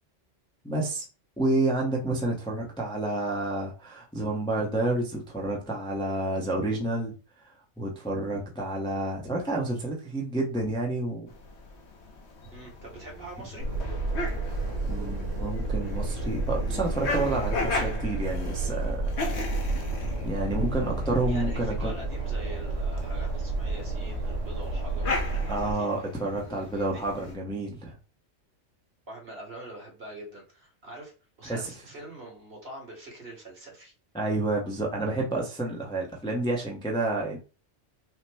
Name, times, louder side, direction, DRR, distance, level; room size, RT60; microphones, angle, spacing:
voice 1, 0.6-1.0 1.4-7.1 7.8-11.3 14.9-19.0 20.2-22.0 25.5-27.9 31.4-31.7 34.1-37.4, right 2 dB, 5° left, -2 dB, 0.7 m, -29 dB
sound 1, 11.3-27.4, left 3 dB, 65° left, 1.1 m, -37 dB
voice 2, 12.5-13.7 21.3-25.9 26.4-27.0 29.1-31.1 31.4-33.9, right 1 dB, 50° right, -2 dB, 1.9 m, -44 dB
sound 2, 13.6-25.7, right 3 dB, 85° right, 1.5 m, -31 dB
5.6 x 2.1 x 3.4 m, 0.33 s
omnidirectional pair, 1.2 m